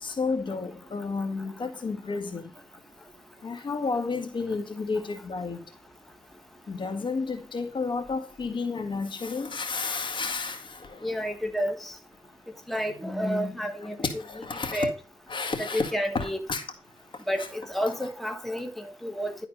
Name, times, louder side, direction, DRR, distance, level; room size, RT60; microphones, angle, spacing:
voice 1, 0.0-2.5 3.4-5.6 6.7-11.1 14.0-14.9 15.3-16.6, left 4 dB, 60° left, 1.8 m, -31 dB
voice 2, 11.0-12.0 12.7-14.4 14.7-14.9 15.6-16.4 17.3-19.4, equal, ahead, 1.4 m, -30 dB
11.5 x 4.2 x 5.3 m
cardioid pair, 75°, 9 cm